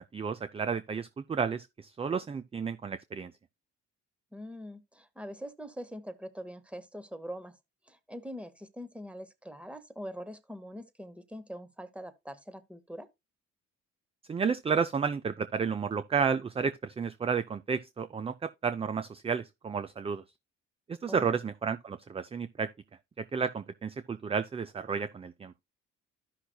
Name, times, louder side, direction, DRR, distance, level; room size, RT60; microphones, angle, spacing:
voice 1, 0.0-3.3 14.3-20.2 20.9-22.7 23.2-25.5, right 6 dB, 20° right, 0.4 m, -32 dB
voice 2, 4.3-7.6 7.9-13.1 21.1-21.4, equal, 5° right, 0.9 m, -43 dB
13.5 x 5.8 x 2.2 m
cardioid pair, 90°, 30 cm